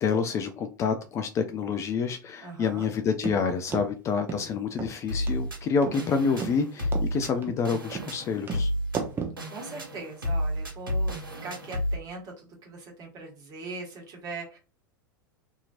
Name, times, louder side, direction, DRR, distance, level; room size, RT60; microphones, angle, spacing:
voice 1, 0.0-8.7, left 5 dB, 25° left, 7 dB, 0.3 m, -28 dB
voice 2, 2.4-2.9 9.5-14.6, right 3 dB, 35° right, -1 dB, 1.4 m, -41 dB
sound 1, 3.2-3.4 3.7-3.9 4.3-4.4 4.8-4.9 5.3-5.4 5.8-6.0 6.4-6.5 6.9-7.1 7.4-7.6 7.9-8.1 8.5-8.6 8.9-9.4, right 6 dB, 20° right, 0.8 m, -33 dB
sound 2, 5.1-11.9, equal, 80° right, 1.0 m, -31 dB
2.8 x 2.7 x 2.4 m, 0.33 s
figure-of-eight pair, 90°, 11 cm